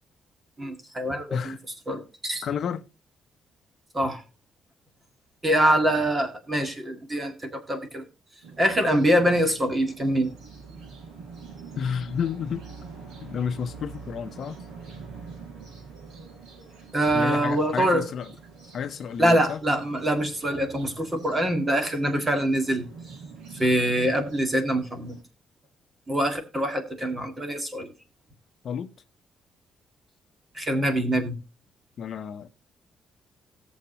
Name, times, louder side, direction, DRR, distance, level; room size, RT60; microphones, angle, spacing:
voice 1, 0.6-1.6 1.9-2.4 3.9-4.2 5.4-8.0 8.6-10.3 16.9-18.0 19.2-22.9 23.6-25.2 26.1-27.9 30.5-31.3, right 1 dB, 20° right, 2.1 m, -24 dB
voice 2, 2.4-2.9 11.8-12.7 13.2-14.6 17.1-18.3 18.7-19.6 28.6-28.9 32.0-32.5, left 7 dB, 50° left, 0.8 m, -31 dB
sound 1, 8.4-25.2, right 5 dB, 90° right, 5.2 m, -45 dB
18.0 x 7.2 x 2.9 m
cardioid pair, 150°, 0 cm